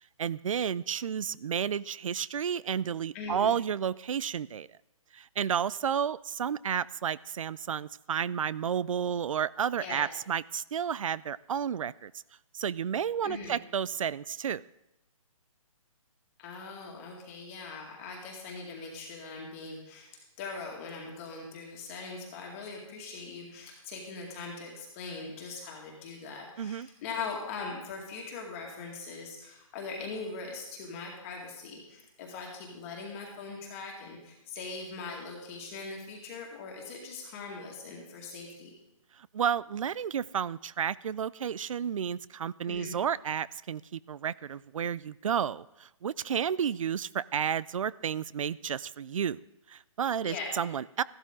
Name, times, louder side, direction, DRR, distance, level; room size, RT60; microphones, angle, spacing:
voice 1, 0.2-4.7 5.1-12.1 12.5-14.6 26.6-26.9 39.3-49.4 49.7-51.0, right 8 dB, 70° right, 21 dB, 0.4 m, -31 dB
voice 2, 3.1-3.5 9.8-10.0 13.2-13.6 16.4-20.1 20.4-38.7 42.6-43.0 50.2-50.5, left 4 dB, 25° left, -1 dB, 2.0 m, -41 dB
14.5 x 12.5 x 3.7 m, 0.90 s
hypercardioid pair, 165°, 18 cm